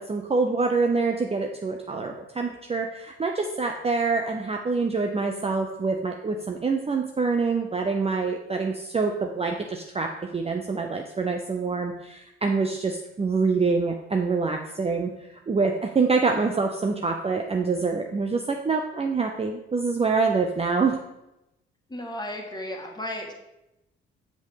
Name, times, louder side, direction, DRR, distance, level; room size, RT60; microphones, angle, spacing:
voice 1, 0.0-15.1 15.5-21.0, right 4 dB, 20° right, 3 dB, 0.7 m, -26 dB
voice 2, 21.9-23.3, left 1 dB, 15° left, 1 dB, 1.8 m, -34 dB
7.6 x 5.1 x 5.1 m, 0.89 s
figure-of-eight pair, 45°, 31 cm